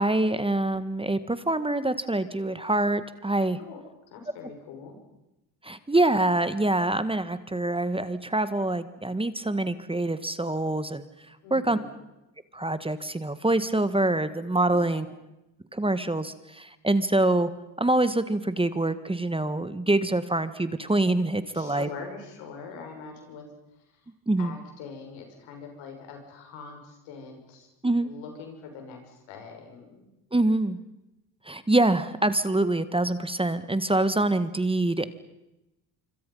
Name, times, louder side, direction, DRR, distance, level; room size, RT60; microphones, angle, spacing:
voice 1, 0.0-3.6 5.6-11.0 11.5-11.8 12.5-15.0 15.7-17.5 17.8-21.9 24.3-24.5 27.8-28.1 30.3-30.8 31.5-35.1, right 2 dB, 10° right, 12 dB, 1.5 m, -25 dB
voice 2, 4.1-5.0 11.4-11.9 14.7-15.1 21.5-23.4 23.8-24.0 24.4-27.7 28.0-30.1, left 5 dB, 85° left, 4 dB, 6.2 m, -43 dB
26.0 x 25.5 x 5.6 m, 0.93 s
supercardioid pair, 70°, 45 cm